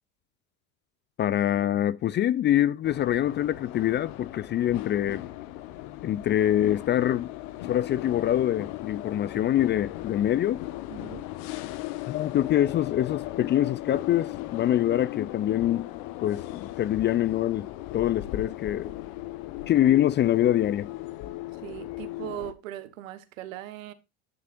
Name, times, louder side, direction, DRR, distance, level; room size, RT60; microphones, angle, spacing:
voice 1, 1.2-5.3 6.0-7.3 7.7-10.7 12.1-15.9 16.2-18.9 19.7-20.9, left 12 dB, 30° left, 0.4 m, -25 dB
sound 1, 2.8-22.5, left 16 dB, 65° left, 1.2 m, -37 dB
voice 2, 10.9-11.3 21.6-23.9, right 14 dB, 75° right, 1.4 m, -39 dB
11.0 x 9.5 x 2.5 m
hypercardioid pair, 80°, 39 cm